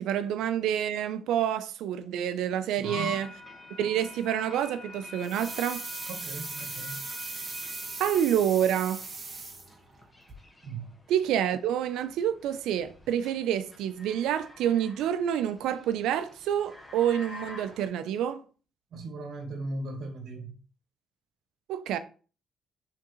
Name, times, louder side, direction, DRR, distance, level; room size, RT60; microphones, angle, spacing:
voice 1, 0.0-3.3 3.8-5.8 8.0-9.0 11.1-18.4 21.7-22.0, right 10 dB, 90° right, 0.5 m, -28 dB
voice 2, 2.7-3.1 6.1-7.0 10.6-10.9 18.9-20.6, right 2 dB, 70° right, 1.2 m, -38 dB
sound 1, 2.8-17.9, left 2 dB, 25° left, 1.3 m, -47 dB
sound 2, 5.2-10.0 10.3-10.4, right 3 dB, 40° right, 1.7 m, -39 dB
4.7 x 3.7 x 3.0 m
cardioid pair, 90°, 0 cm